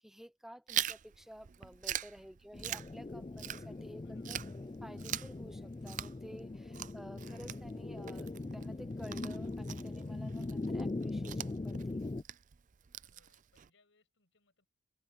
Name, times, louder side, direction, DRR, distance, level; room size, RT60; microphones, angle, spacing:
voice 1, 0.0-4.4 4.8-12.1, equal, ahead, 0.8 m, -52 dB
Chewing mastication, 0.7-3.9 4.2-13.7, right 11 dB, 40° right, 0.5 m, -43 dB
sound 1, 2.5-12.2, left 2 dB, 25° left, 0.4 m, -41 dB
voice 2, 3.9-4.7 6.6-7.0 13.0-14.7, left 3 dB, 70° left, 6.6 m, -73 dB
head